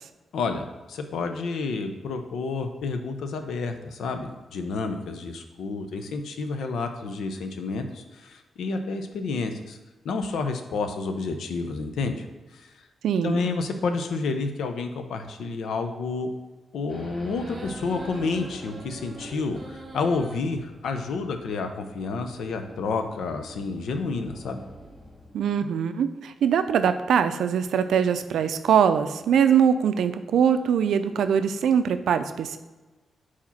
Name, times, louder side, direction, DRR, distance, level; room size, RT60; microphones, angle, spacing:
voice 1, 0.3-9.8 10.0-12.3 12.5-12.9 13.2-16.3 16.7-24.6, left 4 dB, 80° left, 7 dB, 0.6 m, -30 dB
voice 2, 13.0-13.4 25.3-32.6, right 7 dB, 90° right, 10 dB, 0.4 m, -22 dB
Race car auto racing / Idling / Accelerating revving vroom, 16.9-25.5, equal, 5° left, 1.9 m, -46 dB
sound 1, 17.3-20.4, right 2 dB, 30° right, 0.6 m, -42 dB
4.9 x 4.3 x 5.6 m, 1.2 s
wide cardioid pair, 180°, 0 cm